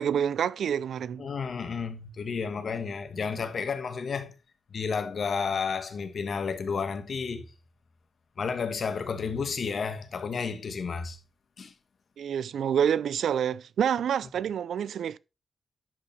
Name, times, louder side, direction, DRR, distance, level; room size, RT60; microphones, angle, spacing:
voice 1, 0.0-1.3 12.2-15.2, right 8 dB, 85° right, 0.4 m, -27 dB
voice 2, 1.2-4.3 4.7-7.5 8.4-11.2 11.6-11.7, left 5 dB, 60° left, 1.3 m, -31 dB
11.0 x 5.5 x 3.2 m
cardioid pair, 80°, 0 cm